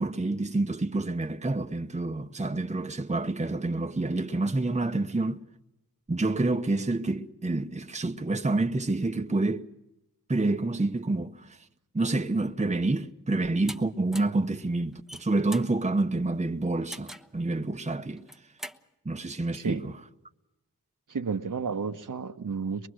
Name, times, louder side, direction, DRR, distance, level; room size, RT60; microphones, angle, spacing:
voice 1, 0.0-5.4 6.1-9.7 10.3-11.6 11.9-18.2 19.0-19.9, right 2 dB, 20° right, 1.1 m, -28 dB
sound 1, 13.7-13.8 14.1-14.4 14.9-15.7 16.9-17.3 18.2-18.8, equal, ahead, 1.1 m, -41 dB
voice 2, 19.5-19.8 21.1-22.9, right 5 dB, 60° right, 1.3 m, -32 dB
23.0 x 23.0 x 6.4 m
cardioid pair, 45°, 35 cm